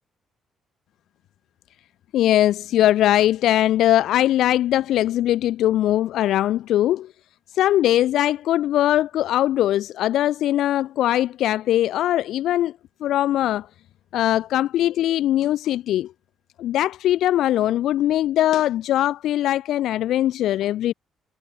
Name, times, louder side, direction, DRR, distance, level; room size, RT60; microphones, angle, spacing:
voice 1, 2.1-7.1 7.5-12.7 13.0-13.7 14.1-16.1 16.6-20.9, left 13 dB, 80° left, 1.9 m, -21 dB
cardioid pair, 90°, 0 cm